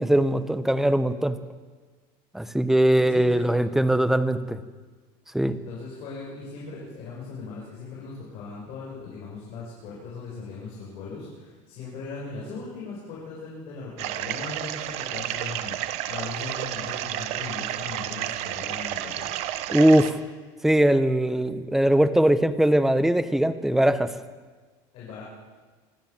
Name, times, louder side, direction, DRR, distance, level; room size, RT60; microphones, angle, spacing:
voice 1, 0.0-1.4 2.3-4.6 5.3-5.6 19.7-20.2 20.6-24.1, right 1 dB, 5° right, 11 dB, 0.9 m, -21 dB
voice 2, 2.9-3.6 5.5-19.3 24.9-25.2, left 4 dB, 50° left, -5 dB, 6.9 m, -39 dB
sound 1, 14.0-20.1, right 13 dB, 55° right, 1.1 m, -31 dB
25.5 x 14.0 x 7.4 m, 1.4 s
cardioid pair, 150°, 13 cm